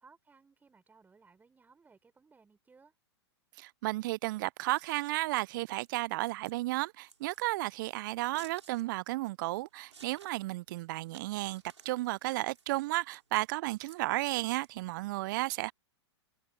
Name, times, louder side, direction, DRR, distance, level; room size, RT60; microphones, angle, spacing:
voice 1, 0.0-2.9, right 4 dB, 10° right, 4.4 m, -61 dB
voice 2, 3.6-15.7, right 19 dB, 45° right, 0.4 m, -33 dB
Scissors, 4.6-15.2, right 5 dB, 80° right, 5.0 m, -59 dB
figure-of-eight pair, 105°, 15 cm